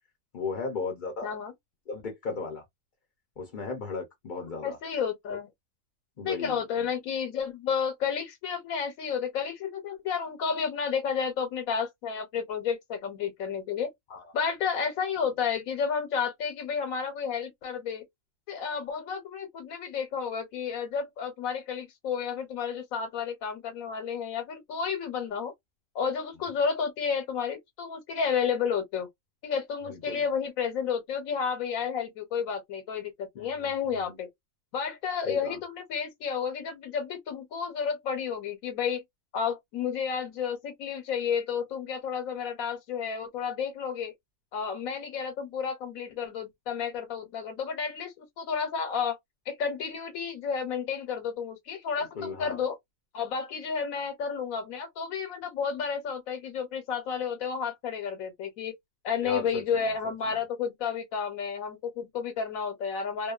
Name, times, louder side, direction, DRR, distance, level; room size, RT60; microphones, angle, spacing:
voice 1, 0.3-1.4 1.9-2.6 3.4-4.8 6.2-6.9 14.1-14.2 29.9-30.2 33.4-34.2 35.2-35.6 52.0-52.6 59.2-59.6 60.2-60.3, left 4 dB, 50° left, 0.6 m, -36 dB
voice 2, 1.2-1.5 4.6-5.5 6.2-13.9 14.3-18.0 18.5-25.5 25.9-29.1 29.4-34.3 34.7-39.0 39.3-44.1 44.5-49.2 49.5-52.8 53.1-58.7 59.0-63.3, left 6 dB, 80° left, 1.1 m, -31 dB
2.7 x 2.1 x 2.3 m
omnidirectional pair, 1.4 m